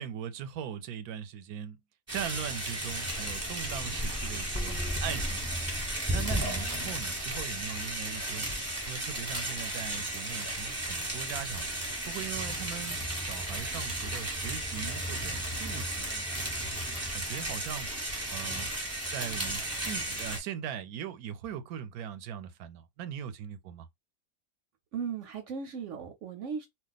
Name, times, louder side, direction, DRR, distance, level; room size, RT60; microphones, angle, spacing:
voice 1, 0.0-1.8 2.1-5.7 6.1-8.5 8.8-11.7 12.1-16.2 17.1-17.9 18.3-18.7 19.1-23.9, right 9 dB, 90° right, 1.1 m, -40 dB
sound 1, 2.1-20.4, right 1 dB, 10° right, 0.9 m, -34 dB
voice 2, 6.3-6.7 24.9-26.7, right 6 dB, 65° right, 0.8 m, -37 dB
2.4 x 2.3 x 3.9 m
omnidirectional pair, 1.5 m